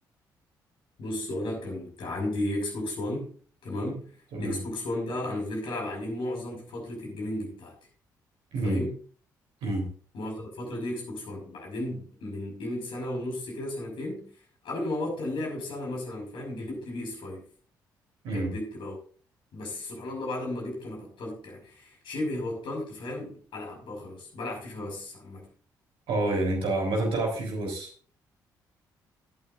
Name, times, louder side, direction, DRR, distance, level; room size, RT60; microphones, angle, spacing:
voice 1, 1.0-3.4 3.6-7.7 8.6-9.0 10.1-14.3 14.6-17.5 18.3-19.0 19.5-25.5, left 1 dB, 55° left, 5.6 m, -34 dB
voice 2, 26.1-27.9, right 2 dB, 60° right, 3.9 m, -28 dB
17.0 x 8.9 x 2.6 m
figure-of-eight pair, 40°, 10 cm